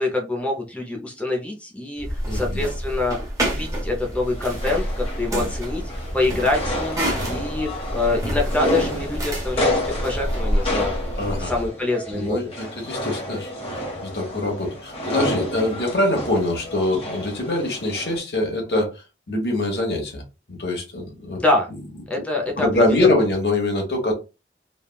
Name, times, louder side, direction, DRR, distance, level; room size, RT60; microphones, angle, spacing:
voice 1, 0.0-3.2 3.4-5.8 6.1-7.0 7.3-10.9 11.4-12.4 21.3-21.7 22.1-23.1, left 2 dB, 10° left, 0.5 m, -25 dB
sound 1, 2.0-11.7, equal, 20° right, 0.8 m, -28 dB
voice 2, 2.3-2.7 6.4-6.5 11.2-11.5 12.1-20.2 20.5-21.4 22.6-24.1, left 2 dB, 70° left, 1.1 m, -24 dB
sound 2, 4.0-18.2, left 1 dB, 35° left, 0.9 m, -30 dB
3.3 x 2.2 x 2.3 m
head